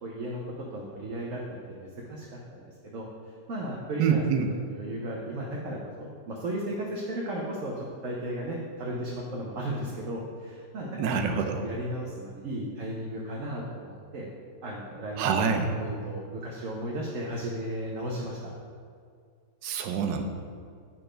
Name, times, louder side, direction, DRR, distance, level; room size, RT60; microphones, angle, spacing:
voice 1, 0.0-3.1 3.5-11.2 11.5-14.3 14.6-15.4 15.8-18.5, right 1 dB, 55° right, -2 dB, 1.0 m, -35 dB
voice 2, 4.0-4.5 11.0-11.6 15.2-15.7 19.6-20.2, right 6 dB, 90° right, 5 dB, 1.3 m, -26 dB
6.9 x 4.4 x 5.0 m, 2.2 s
omnidirectional pair, 1.8 m